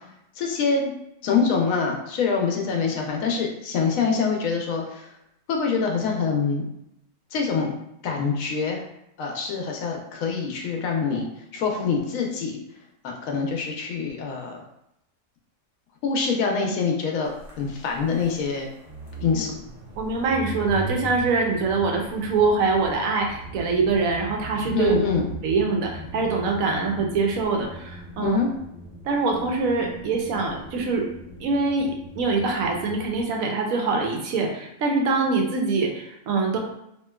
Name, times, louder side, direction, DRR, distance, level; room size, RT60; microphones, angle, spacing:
voice 1, 0.4-0.9 1.2-5.1 5.5-6.7 7.3-7.7 8.0-8.8 9.2-11.2 11.5-12.6 13.0-14.6 16.0-18.7 19.2-19.5 24.7-25.3 28.2-28.5, left 5 dB, 80° left, 1 dB, 1.0 m, -25 dB
sound 1, 17.4-33.3, right 1 dB, 60° right, 1.0 m, -40 dB
voice 2, 20.0-24.9 25.4-28.4 29.1-31.1 31.4-36.6, right 4 dB, 85° right, 1 dB, 1.0 m, -24 dB
2.9 x 2.7 x 2.2 m, 0.80 s
omnidirectional pair, 1.4 m